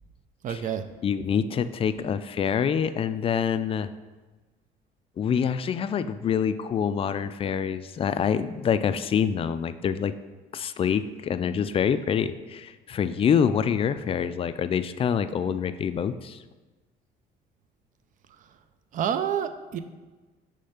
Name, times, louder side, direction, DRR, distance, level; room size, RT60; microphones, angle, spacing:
voice 1, 0.4-0.9 18.9-19.8, right 8 dB, 50° right, 10 dB, 0.5 m, -28 dB
voice 2, 1.0-3.9 5.2-10.1 10.5-16.4, left 7 dB, 35° left, 12 dB, 0.3 m, -26 dB
6.5 x 3.3 x 5.7 m, 1.2 s
cardioid pair, 110°, 17 cm